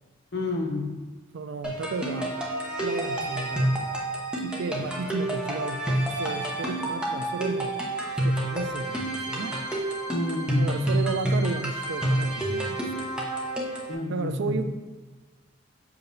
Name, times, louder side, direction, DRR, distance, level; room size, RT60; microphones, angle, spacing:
voice 1, 0.3-1.1 10.1-10.8 13.9-14.6, left 2 dB, 60° left, 2 dB, 0.8 m, -30 dB
voice 2, 1.3-2.4 2.8-3.7 4.4-7.8 8.2-9.6 10.6-13.1 14.1-14.9, right 4 dB, 65° right, 9 dB, 0.4 m, -33 dB
sound 1, 1.6-13.9, right 1 dB, 5° right, 0.8 m, -29 dB
7.1 x 5.6 x 2.6 m, 1.3 s
head